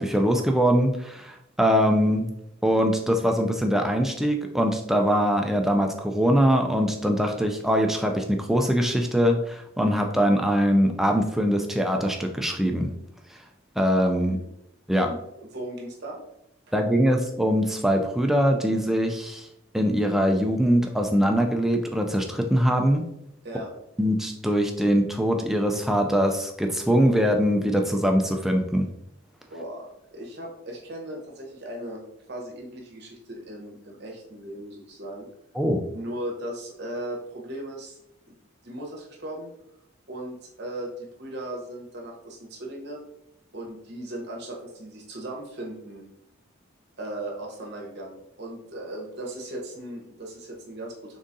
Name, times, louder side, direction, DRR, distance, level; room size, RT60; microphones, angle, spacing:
voice 1, 0.0-2.3 2.6-12.9 13.8-14.4 14.9-15.1 16.7-19.5 19.7-23.0 24.0-28.9 35.6-35.8, equal, ahead, 3 dB, 0.3 m, -22 dB
voice 2, 15.5-16.2 23.4-23.7 29.5-32.0 32.3-35.3 35.9-38.0 38.3-38.4 38.6-39.5 40.1-43.0 43.5-46.0 47.0-51.2, right 1 dB, 50° right, 0 dB, 0.9 m, -37 dB
3.9 x 3.6 x 2.6 m, 0.80 s
head